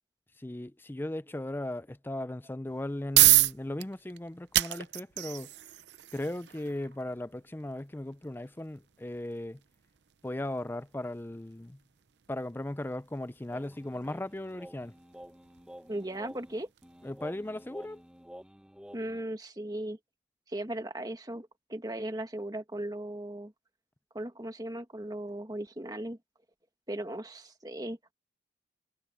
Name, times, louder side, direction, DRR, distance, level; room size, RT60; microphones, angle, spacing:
voice 1, 0.4-5.5 6.1-9.6 10.2-11.8 12.3-14.9 17.0-18.0, left 1 dB, 10° left, 0.4 m, -37 dB
sound 1, 2.7-17.5, right 16 dB, 75° right, 0.7 m, -32 dB
sound 2, 13.5-19.2, equal, 5° right, 1.2 m, -50 dB
voice 2, 15.9-16.7 18.9-20.0 20.5-23.5 24.1-26.2 26.9-28.1, right 1 dB, 20° right, 1.8 m, -37 dB
head